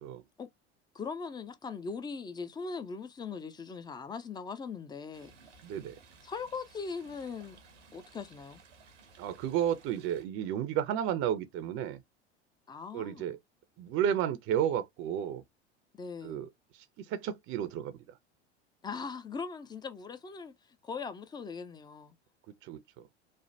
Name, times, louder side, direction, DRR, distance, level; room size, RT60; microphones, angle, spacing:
voice 1, 0.9-5.3 6.2-7.6 7.9-8.6 12.7-13.3 15.9-16.5 18.8-22.1, left 5 dB, 15° left, 0.4 m, -40 dB
Stream, 5.1-10.2, right 4 dB, 85° right, 0.9 m, -58 dB
voice 2, 5.6-6.0 9.2-12.0 12.9-13.4 13.8-15.4 16.2-18.0 22.6-23.1, right 10 dB, 40° right, 0.5 m, -32 dB
3.2 x 2.1 x 2.6 m
hypercardioid pair, 80°, 35 cm